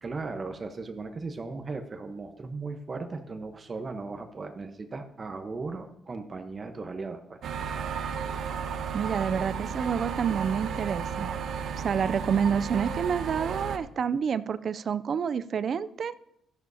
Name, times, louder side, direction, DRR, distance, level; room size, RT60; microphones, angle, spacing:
voice 1, 0.0-7.4, right 3 dB, 35° right, 7 dB, 1.0 m, -37 dB
sound 1, 7.4-13.8, right 6 dB, 70° right, 0.8 m, -33 dB
voice 2, 8.9-11.3 11.8-16.1, right 7 dB, 55° right, 15 dB, 0.4 m, -28 dB
13.0 x 11.0 x 2.8 m, 0.80 s
cardioid pair, 90°, 0 cm